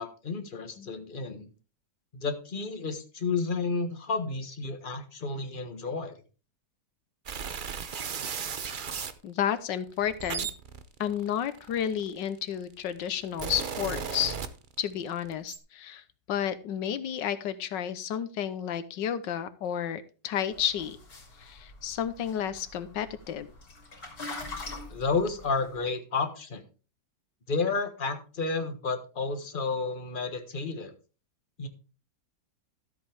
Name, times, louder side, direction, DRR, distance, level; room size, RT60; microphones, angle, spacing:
voice 1, 0.0-1.5 2.1-6.2 24.9-26.6 27.5-30.9 31.6-31.7, left 4 dB, 30° left, 7 dB, 1.3 m, -31 dB
sound 1, 7.3-9.2 9.9-12.3 13.0-15.0 15.3-15.6, right 6 dB, 60° right, 0.5 m, -36 dB
voice 2, 9.2-10.5 11.0-14.3 14.8-21.0 21.4-23.5, left 9 dB, 85° left, 12 dB, 1.5 m, -31 dB
sound 2, 20.5-25.8, left 3 dB, 55° left, 3.3 m, -43 dB
13.0 x 7.9 x 3.5 m, 0.35 s
omnidirectional pair, 1.9 m